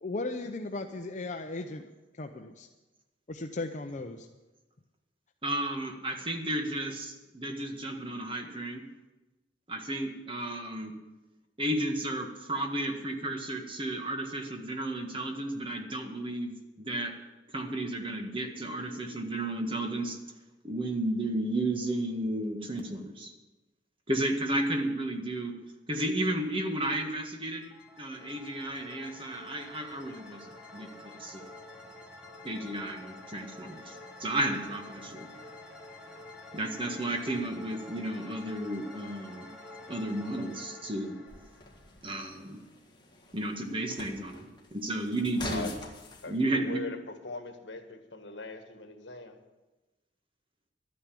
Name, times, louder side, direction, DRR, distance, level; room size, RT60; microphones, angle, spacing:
voice 1, 0.0-1.8 2.2-2.7 3.3-4.2, left 2 dB, 40° left, 5 dB, 0.7 m, -36 dB
voice 2, 5.4-8.8 9.7-10.9 11.6-16.5 16.8-17.1 17.5-20.2 20.6-23.3 24.1-25.5 25.9-27.6 28.0-30.4 30.7-30.9 31.2-31.4 32.5-33.8 34.2-35.3 36.5-39.5 39.9-41.2 42.0-42.6 43.3-45.7 46.3-46.8, right 1 dB, 30° right, 4 dB, 1.6 m, -33 dB
sound 1, 27.6-42.4, left 2 dB, 5° right, 2.7 m, -48 dB
sound 2, 41.3-46.3, left 1 dB, 25° left, 1.9 m, -44 dB
voice 3, 46.2-47.0 47.2-49.4, left 3 dB, 70° left, 6 dB, 1.7 m, -40 dB
12.5 x 9.5 x 8.5 m, 1.1 s
head